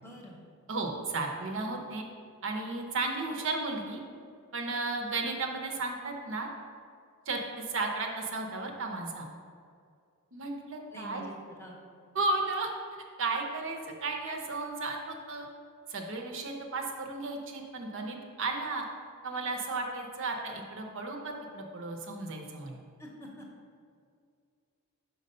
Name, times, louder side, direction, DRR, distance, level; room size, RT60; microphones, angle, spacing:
voice 1, 0.0-0.4 10.9-11.8 23.0-23.5, right 1 dB, 10° left, -1 dB, 0.8 m, -46 dB
voice 2, 0.7-2.0 2.4-4.0 4.5-6.5 7.3-9.3 10.3-11.2 12.1-12.7 13.2-15.5 15.9-18.8 19.2-22.7, right 3 dB, 60° right, 2 dB, 0.7 m, -34 dB
5.3 x 4.5 x 5.4 m, 2.3 s
head